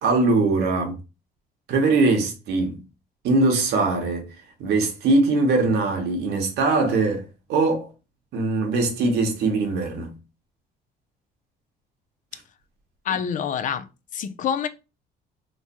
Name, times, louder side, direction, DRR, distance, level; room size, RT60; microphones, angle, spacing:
voice 1, 0.0-1.0 1.7-2.8 3.2-4.3 4.6-7.9 8.3-10.1, right 3 dB, 80° right, 1.2 m, -21 dB
voice 2, 13.1-13.9 14.1-14.7, left 8 dB, 50° left, 0.5 m, -26 dB
3.2 x 2.1 x 4.2 m
cardioid pair, 110°, 17 cm